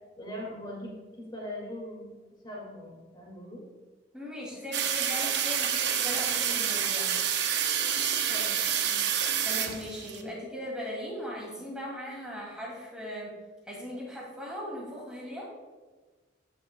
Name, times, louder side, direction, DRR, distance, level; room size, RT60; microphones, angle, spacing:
voice 1, 0.2-2.2 2.4-3.6 8.3-9.1 9.9-10.4, left 1 dB, 25° left, -4 dB, 2.1 m, -41 dB
voice 2, 4.1-7.2 9.4-13.3 13.7-15.5, equal, 5° right, -4 dB, 2.4 m, -39 dB
sound 1, 4.7-10.2, right 8 dB, 60° right, 0.8 m, -28 dB
16.0 x 6.9 x 2.2 m, 1.3 s
head